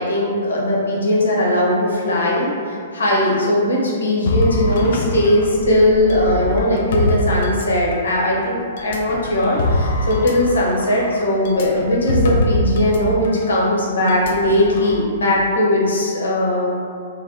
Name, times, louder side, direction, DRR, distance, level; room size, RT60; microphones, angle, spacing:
voice 1, 0.0-16.7, left 1 dB, 65° left, -4 dB, 0.7 m, -19 dB
sound 1, 4.3-8.1 8.8-13.0 13.2-13.4 14.1-14.9, left 1 dB, 50° left, 0.3 m, -23 dB
2.7 x 2.1 x 3.7 m, 2.3 s
figure-of-eight pair, 110°, 0 cm